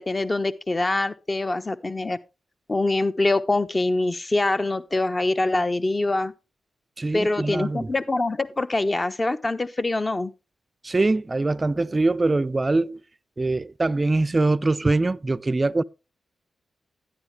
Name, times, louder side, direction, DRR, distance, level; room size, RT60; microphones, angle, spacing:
voice 1, 0.0-2.2 2.7-6.3 7.1-10.3, left 2 dB, 30° left, 1.0 m, -24 dB
voice 2, 7.0-7.9 10.8-13.0 13.4-15.8, right 2 dB, 30° right, 0.5 m, -23 dB
12.0 x 10.0 x 3.2 m
cardioid pair, 50°, 0 cm